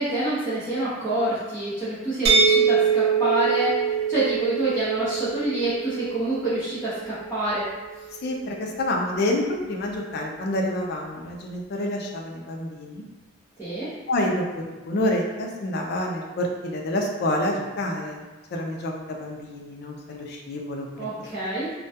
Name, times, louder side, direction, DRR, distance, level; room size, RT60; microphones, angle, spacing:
voice 1, 0.0-7.7 13.6-13.9 21.0-21.7, right 1 dB, 5° left, -15 dB, 0.7 m, -27 dB
sound 1, 2.3-8.0, right 6 dB, 55° right, 0.4 m, -24 dB
voice 2, 8.2-13.0 14.1-18.2 18.5-21.1, left 1 dB, 55° left, 0 dB, 0.4 m, -28 dB
2.2 x 2.2 x 2.7 m, 1.2 s
head